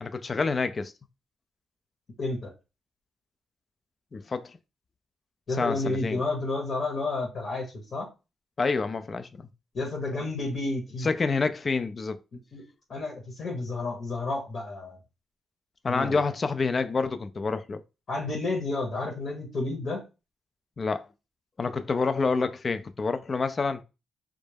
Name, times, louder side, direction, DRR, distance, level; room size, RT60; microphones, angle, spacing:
voice 1, 0.0-0.9 4.1-4.5 5.6-6.2 8.6-9.4 11.0-12.2 15.8-17.8 20.8-21.1 21.6-23.8, left 4 dB, 40° left, 0.3 m, -28 dB
voice 2, 2.2-2.5 5.5-8.1 9.7-11.1 12.5-12.6 12.9-15.0 15.9-16.2 18.1-20.0, left 2 dB, 55° left, 0.9 m, -31 dB
2.3 x 2.0 x 3.3 m
cardioid pair, 80°, 0 cm